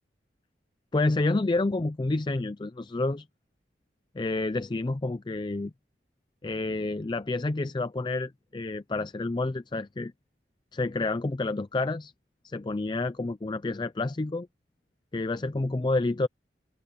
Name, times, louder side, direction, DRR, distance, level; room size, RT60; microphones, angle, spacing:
voice 1, 0.9-3.3 4.1-5.7 6.4-10.1 10.7-12.1 12.4-14.5 15.1-16.3, left 2 dB, 25° left, 0.4 m, -29 dB
open air
head